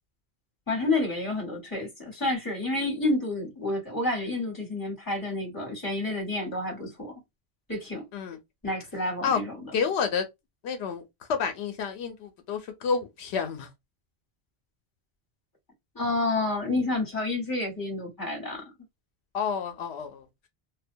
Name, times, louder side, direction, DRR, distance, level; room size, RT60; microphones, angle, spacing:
voice 1, 0.7-7.1 7.7-8.0 8.6-9.6 15.9-18.6, left 2 dB, 20° left, 1.2 m, -29 dB
voice 2, 9.7-10.2 10.6-11.0 11.3-13.7 19.3-20.2, left 6 dB, 85° left, 0.9 m, -29 dB
2.4 x 2.1 x 2.6 m
omnidirectional pair, 1.1 m